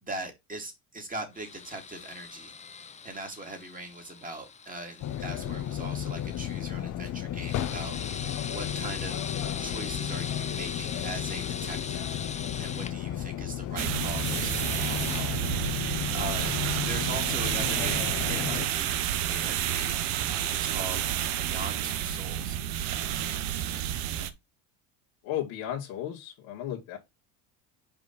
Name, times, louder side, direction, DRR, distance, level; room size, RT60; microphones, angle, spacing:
voice 1, 0.0-2.5 3.0-9.3 9.6-15.8 16.1-20.1 20.5-22.6, right 2 dB, 20° right, 2.6 m, -41 dB
sound 1, 1.3-6.6 7.4-12.9 14.0-15.2 16.3-19.9, left 6 dB, 15° left, 0.6 m, -42 dB
sound 2, 5.0-18.7, left 11 dB, 45° left, 1.0 m, -34 dB
sound 3, 13.8-24.3, right 11 dB, 80° right, 1.1 m, -30 dB
voice 2, 25.2-27.0, left 11 dB, 80° left, 2.0 m, -34 dB
5.3 x 5.0 x 4.1 m
supercardioid pair, 110°, 41 cm